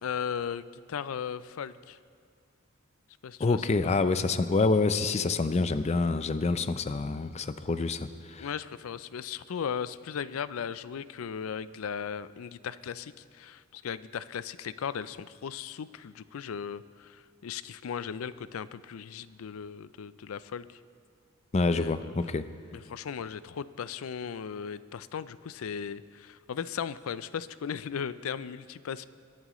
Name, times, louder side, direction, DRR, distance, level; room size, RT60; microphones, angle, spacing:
voice 1, 0.0-2.0 3.2-4.0 8.4-20.8 21.7-22.1 22.7-29.1, left 7 dB, 85° left, 16 dB, 0.4 m, -37 dB
voice 2, 3.4-8.5 21.5-22.5, left 3 dB, 30° left, 12 dB, 0.4 m, -27 dB
22.5 x 11.5 x 3.1 m, 2.2 s
head